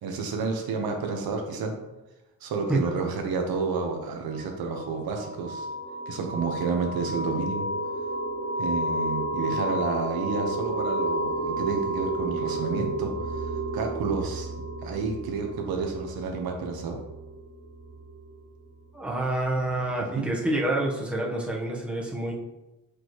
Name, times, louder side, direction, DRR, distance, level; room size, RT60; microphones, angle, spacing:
voice 1, 0.0-1.7 2.4-5.7 6.1-7.7 8.6-14.5 14.8-17.0 20.1-20.3, right 4 dB, 90° right, 3 dB, 1.2 m, -30 dB
sound 1, 4.3-18.7, right 1 dB, 30° right, 1.4 m, -32 dB
voice 2, 18.9-22.3, right 1 dB, 5° right, -3 dB, 1.1 m, -27 dB
6.2 x 5.1 x 3.1 m, 1.0 s
cardioid pair, 145°, 35 cm